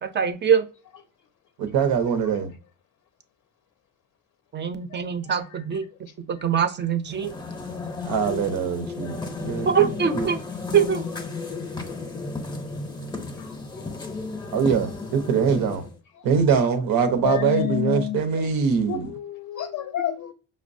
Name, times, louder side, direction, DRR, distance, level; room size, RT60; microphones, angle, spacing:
voice 1, 0.0-0.7 4.5-5.8 6.3-7.3 9.7-10.4 10.7-11.0, right 7 dB, 35° right, 0.4 m, -23 dB
voice 2, 1.6-2.5 8.0-9.9 10.1-10.3 14.5-15.8 16.2-19.1, right 6 dB, 90° right, 0.8 m, -23 dB
sound 1, 7.1-16.0, left 3 dB, 15° left, 0.5 m, -34 dB
voice 3, 17.2-18.2 18.9-20.3, left 12 dB, 55° left, 0.4 m, -28 dB
5.3 x 2.2 x 2.5 m
cardioid pair, 130°, 34 cm